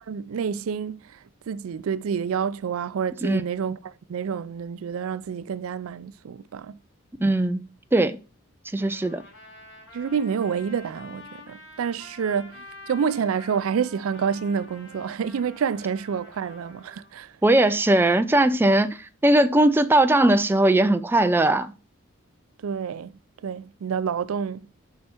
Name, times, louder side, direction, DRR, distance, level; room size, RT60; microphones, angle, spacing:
voice 1, 0.1-1.2 1.5-6.8 9.9-17.3 22.6-23.1 23.4-24.7, right 7 dB, 90° right, 0.4 m, -28 dB
voice 2, 7.2-7.7 7.9-8.2 8.7-9.2 17.4-21.7, right 1 dB, 10° right, 0.4 m, -19 dB
Trumpet, 8.8-17.1, left 1 dB, 90° left, 3.5 m, -47 dB
6.8 x 5.5 x 4.4 m
head